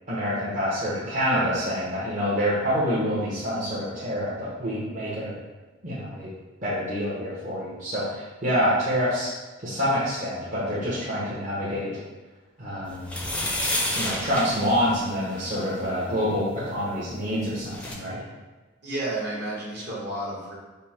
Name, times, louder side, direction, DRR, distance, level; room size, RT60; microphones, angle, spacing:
voice 1, 0.1-5.3 5.8-6.3 6.6-9.3 9.6-11.9 12.6-13.3 14.0-18.2, equal, 40° right, -9 dB, 0.9 m, -27 dB
sound 1, 13.0-15.6 17.3-17.4 17.6-18.0, left 1 dB, 5° left, 0.5 m, -30 dB
voice 2, 18.8-20.5, right 1 dB, 60° right, -5 dB, 1.4 m, -31 dB
5.3 x 2.1 x 4.2 m, 1.2 s
head